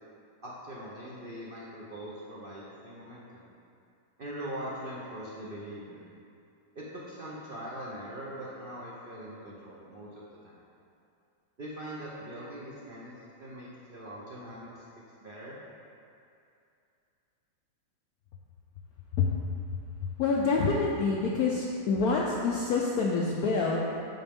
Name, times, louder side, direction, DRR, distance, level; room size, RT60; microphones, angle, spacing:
voice 1, 0.4-3.5 4.2-6.0 6.7-10.6 11.6-13.1 13.4-14.8 15.2-15.6, right 1 dB, 75° right, -6 dB, 0.5 m, -42 dB
voice 2, 19.7-23.8, left 4 dB, 80° left, -2 dB, 0.8 m, -27 dB
7.9 x 5.1 x 3.5 m, 2.6 s
omnidirectional pair, 2.1 m